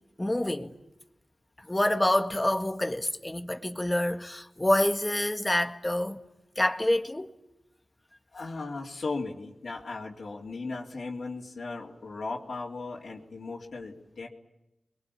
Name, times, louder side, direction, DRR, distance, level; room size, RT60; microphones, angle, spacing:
voice 1, 0.2-0.7 1.6-6.2 6.6-7.3, left 1 dB, 20° left, 1.9 m, -27 dB
voice 2, 8.3-14.3, left 3 dB, 75° left, 3.5 m, -37 dB
29.5 x 22.5 x 8.8 m
cardioid pair, 55°, 0 cm